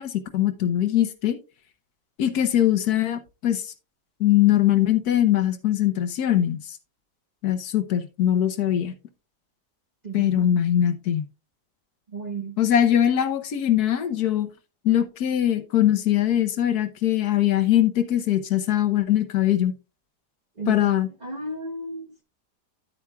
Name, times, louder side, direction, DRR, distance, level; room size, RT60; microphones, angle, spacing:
voice 1, 0.0-1.4 2.2-3.6 4.2-6.6 7.4-8.9 10.1-11.3 12.6-14.5 14.8-19.7 20.7-21.1, left 11 dB, 70° left, 1.3 m, -21 dB
voice 2, 10.0-10.5 12.1-12.6 20.6-20.9 21.2-22.2, right 3 dB, 35° right, 0.8 m, -34 dB
9.7 x 8.4 x 2.3 m
omnidirectional pair, 1.8 m